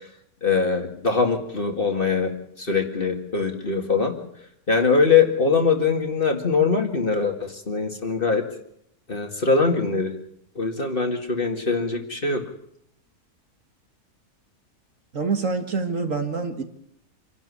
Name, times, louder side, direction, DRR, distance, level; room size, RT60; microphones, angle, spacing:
voice 1, 0.4-2.3 2.6-4.2 4.7-8.4 9.1-10.1 10.6-12.4, left 4 dB, 35° left, 5 dB, 2.3 m, -22 dB
voice 2, 15.1-16.6, right 4 dB, 55° right, 6 dB, 2.1 m, -26 dB
27.0 x 11.5 x 9.8 m, 0.73 s
omnidirectional pair, 1.7 m